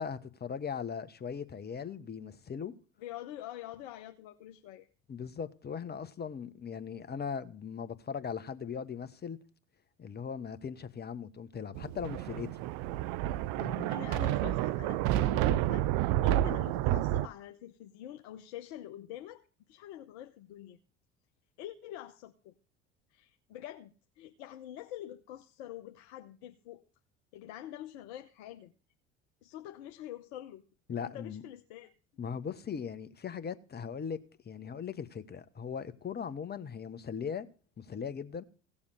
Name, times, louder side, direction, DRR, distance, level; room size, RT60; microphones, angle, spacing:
voice 1, 0.0-2.7 5.1-9.4 10.0-12.5 13.6-13.9 30.9-31.4 32.2-34.2 34.4-37.5 37.8-38.4, left 7 dB, 30° left, 1.3 m, -39 dB
voice 2, 3.0-4.9 13.9-20.8 21.6-22.5 23.1-26.8 27.3-28.7 29.4-30.6 31.0-31.9, left 12 dB, 60° left, 1.0 m, -46 dB
Thunder, 11.7-17.3, right 14 dB, 55° right, 0.6 m, -30 dB
17.0 x 7.2 x 6.6 m
figure-of-eight pair, 65°, 35 cm